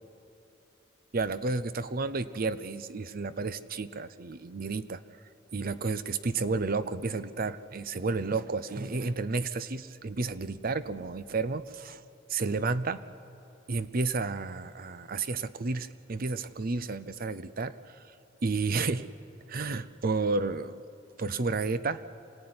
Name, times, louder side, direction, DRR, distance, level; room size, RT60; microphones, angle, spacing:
voice 1, 1.1-5.0 5.5-12.0 12.3-13.0 13.7-17.8 18.4-19.1 19.5-20.8 21.2-22.0, right 3 dB, 50° right, 14 dB, 0.7 m, -31 dB
26.5 x 16.5 x 9.6 m, 2.8 s
head